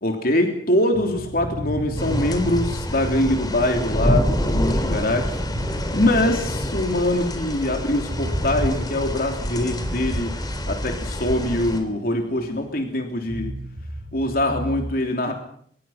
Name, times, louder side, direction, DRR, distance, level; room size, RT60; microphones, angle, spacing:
voice 1, 0.0-5.4 5.9-10.3 10.7-13.5 14.1-15.3, left 1 dB, 55° left, 3 dB, 3.2 m, -23 dB
sound 1, 0.9-7.4 7.7-7.8 8.1-12.7 13.2-14.8, equal, 50° right, 5.5 m, -34 dB
sound 2, 2.0-11.8, equal, 25° left, 3.9 m, -27 dB
25.5 x 21.5 x 5.8 m, 0.62 s
head